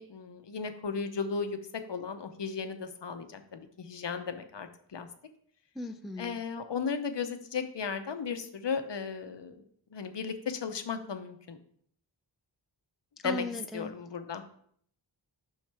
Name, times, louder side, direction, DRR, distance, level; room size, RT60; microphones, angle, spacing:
voice 1, 0.0-1.6 1.9-5.1 6.2-9.6 9.9-11.6 13.2-13.4 13.7-14.5, left 5 dB, 70° left, 8 dB, 0.7 m, -35 dB
voice 2, 5.8-6.4 13.2-13.9, left 1 dB, ahead, 8 dB, 0.3 m, -37 dB
6.2 x 5.7 x 3.4 m, 0.62 s
wide cardioid pair, 60°, 45 cm